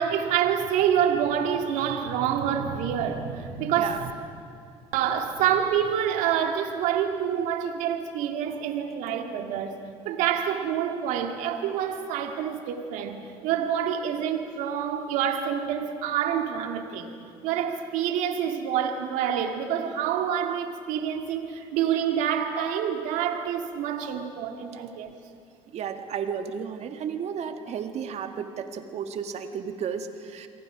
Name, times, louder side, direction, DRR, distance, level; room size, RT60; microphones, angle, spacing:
voice 1, 0.0-4.1 4.9-17.1 17.4-25.1, right 9 dB, 75° right, 5 dB, 2.1 m, -27 dB
voice 2, 25.7-30.5, right 7 dB, 55° right, 7 dB, 1.9 m, -33 dB
28.5 x 23.0 x 5.0 m, 2.5 s
supercardioid pair, 70°, 13 cm